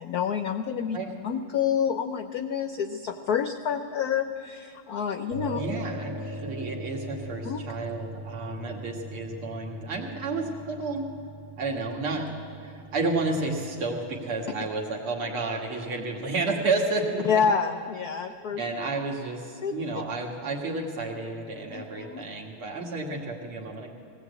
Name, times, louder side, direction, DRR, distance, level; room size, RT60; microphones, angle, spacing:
voice 1, 0.0-1.0 1.2-5.6 7.4-7.6 17.2-18.6 19.6-19.7 21.7-22.2, left 7 dB, 75° left, 8 dB, 0.8 m, -28 dB
sound 1, 5.3-14.4, right 1 dB, 40° right, 2.7 m, -40 dB
voice 2, 5.5-11.1 11.6-12.3 12.6-17.4 18.6-23.9, right 3 dB, 80° right, 0 dB, 2.9 m, -31 dB
19.5 x 17.0 x 8.2 m, 2.5 s
omnidirectional pair, 2.4 m